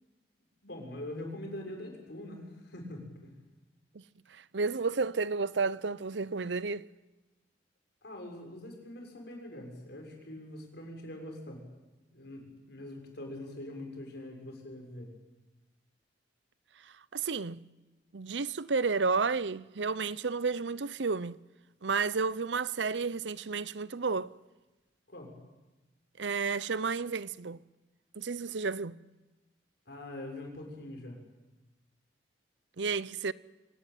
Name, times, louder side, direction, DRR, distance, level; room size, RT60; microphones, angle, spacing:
voice 1, 0.6-3.3 8.0-11.7 12.1-15.1 25.1-25.4 29.9-31.2, left 1 dB, 65° left, 6.6 m, -43 dB
voice 2, 4.3-6.9 17.1-17.6 18.1-21.4 21.8-24.3 26.2-27.6 28.2-29.0 32.8-33.3, right 4 dB, 75° right, 0.7 m, -31 dB
25.0 x 18.5 x 9.2 m
head